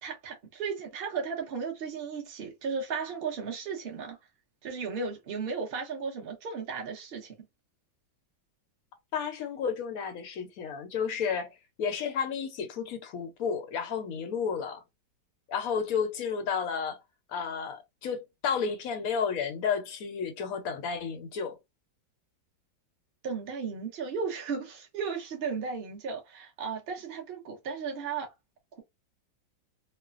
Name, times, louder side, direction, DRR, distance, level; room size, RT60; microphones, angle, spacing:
voice 1, 0.0-4.2 4.6-7.3 23.2-28.3, right 5 dB, 45° right, 0.8 m, -35 dB
voice 2, 9.1-14.8 15.5-17.0 17.3-21.6, left 6 dB, 70° left, 0.8 m, -32 dB
3.1 x 2.1 x 2.3 m
omnidirectional pair, 2.0 m